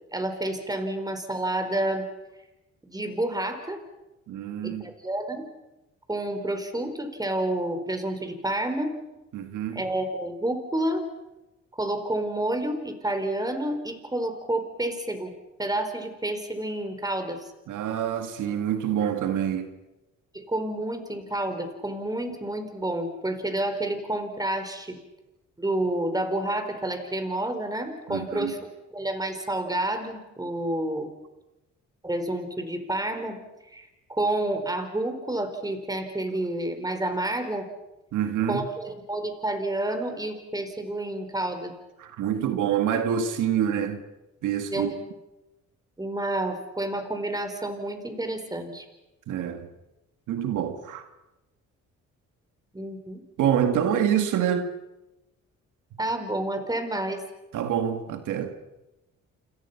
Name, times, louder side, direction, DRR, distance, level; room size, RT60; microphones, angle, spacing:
voice 1, 0.1-2.0 2.8-3.8 4.6-5.4 6.1-8.9 9.7-11.0 11.7-15.3 15.6-17.5 20.3-25.0 25.6-28.7 28.9-31.1 32.0-33.4 33.7-37.7 38.5-41.7 44.7-45.0 46.0-48.8 52.7-53.2 56.0-57.2, right 1 dB, 10° right, 4.8 m, -29 dB
voice 2, 4.3-4.9 9.3-9.8 17.7-19.7 28.1-28.5 38.1-38.7 42.0-44.0 44.4-44.9 49.3-49.7 50.3-51.1 53.4-54.7 57.5-58.6, right 9 dB, 85° right, 2.1 m, -26 dB
28.5 x 28.0 x 5.9 m
cardioid pair, 90°, 30 cm